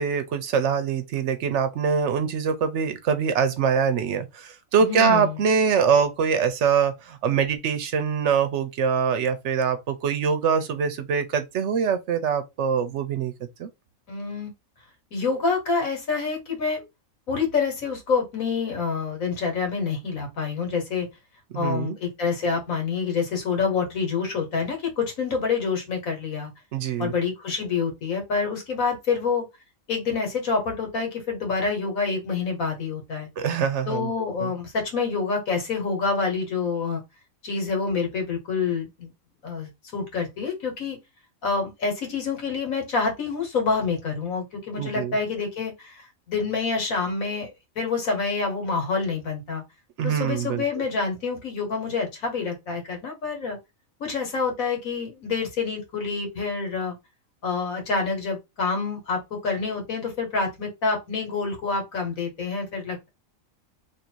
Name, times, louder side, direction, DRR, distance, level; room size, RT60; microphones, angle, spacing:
voice 1, 0.0-13.3 13.6-13.7 21.5-22.0 26.7-27.1 33.4-34.1 34.4-34.5 44.8-45.2 50.0-50.6, right 6 dB, 65° right, 0.9 m, -24 dB
voice 2, 4.8-5.4 14.1-14.5 15.1-16.8 17.3-21.1 21.5-26.5 27.0-29.5 29.9-33.3 33.9-37.0 37.4-39.1 39.4-41.0 41.4-49.6 50.0-53.6 54.0-56.9 57.4-63.1, left 5 dB, 90° left, 1.7 m, -27 dB
3.0 x 2.6 x 4.4 m
omnidirectional pair, 1.4 m